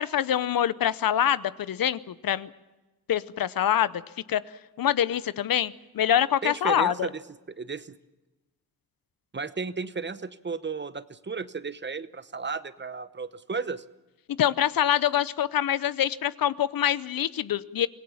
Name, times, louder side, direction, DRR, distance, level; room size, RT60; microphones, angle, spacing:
voice 1, 0.0-2.5 3.1-4.0 4.3-4.4 4.8-7.1 14.4-17.9, left 10 dB, 70° left, 17 dB, 0.8 m, -25 dB
voice 2, 6.4-7.2 7.6-8.0 9.3-13.8, right 4 dB, 30° right, 15 dB, 0.9 m, -34 dB
25.5 x 18.0 x 7.2 m, 1.1 s
cardioid pair, 85°, 36 cm